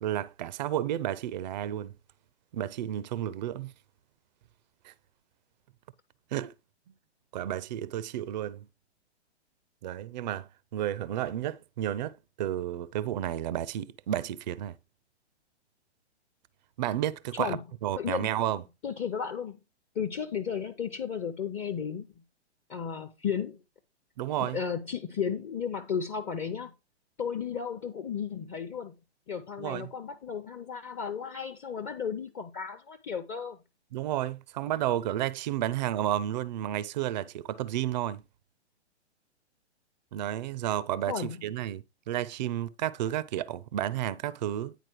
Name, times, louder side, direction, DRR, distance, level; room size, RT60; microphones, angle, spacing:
voice 1, 0.0-1.9 2.5-3.7 4.8-4.9 6.3-6.5 7.3-8.7 9.8-14.8 16.8-17.6 17.8-18.6 24.2-24.6 29.6-29.9 33.9-38.2 40.1-44.8, right 12 dB, 40° right, 0.5 m, -32 dB
voice 2, 18.0-18.3 18.8-19.6 19.9-22.1 22.7-23.6 24.4-26.7 27.2-28.9 29.3-33.6 41.1-41.4, left 7 dB, 20° left, 0.7 m, -34 dB
10.0 x 4.3 x 4.6 m
figure-of-eight pair, 125°, 34 cm